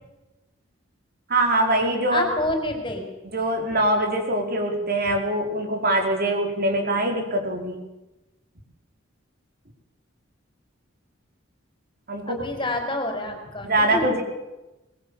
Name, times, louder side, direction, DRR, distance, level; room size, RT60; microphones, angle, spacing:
voice 1, 1.3-2.3 3.3-7.8 12.1-12.4 13.6-14.2, right 1 dB, 50° right, 4 dB, 4.9 m, -23 dB
voice 2, 2.1-3.1 12.3-14.2, left 1 dB, 25° left, 5 dB, 5.1 m, -28 dB
25.0 x 22.0 x 7.2 m, 0.98 s
head